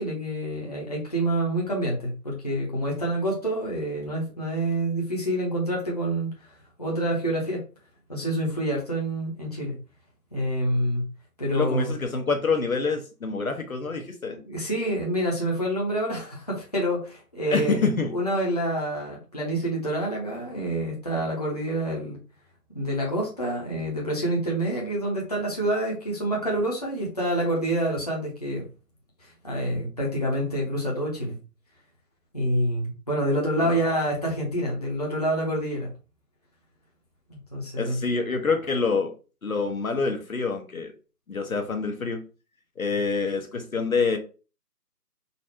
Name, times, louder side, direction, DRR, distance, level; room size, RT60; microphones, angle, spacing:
voice 1, 0.0-6.3 6.8-7.6 8.1-9.7 10.3-11.0 11.4-11.9 14.4-17.8 18.1-22.2 22.7-28.7 29.2-31.3 32.3-35.9 37.3-38.0, right 1 dB, 25° left, 0.9 m, -27 dB
voice 2, 11.5-14.4 17.5-18.1 33.5-33.8 37.8-39.1 39.4-40.9 41.3-42.2 42.8-44.2, left 4 dB, 60° left, 0.9 m, -26 dB
4.1 x 2.6 x 4.3 m
figure-of-eight pair, 170°, 48 cm